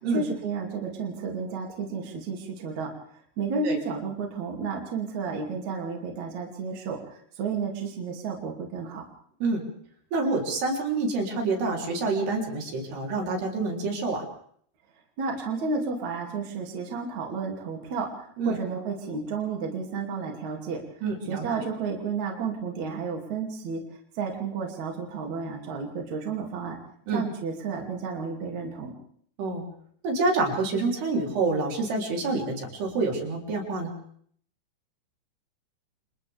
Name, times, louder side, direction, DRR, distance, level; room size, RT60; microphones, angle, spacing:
voice 1, 0.1-2.9 3.4-7.0 7.4-9.0 15.2-18.1 18.5-20.8 21.3-23.8 24.2-26.8 27.1-28.9, right 5 dB, 45° right, 1 dB, 3.7 m, -31 dB
voice 2, 10.1-14.2 18.4-18.6 21.0-21.7 27.1-27.2 29.4-29.6 30.0-33.9, right 3 dB, 75° right, 0 dB, 5.6 m, -27 dB
30.0 x 27.5 x 3.5 m, 0.62 s
omnidirectional pair, 4.7 m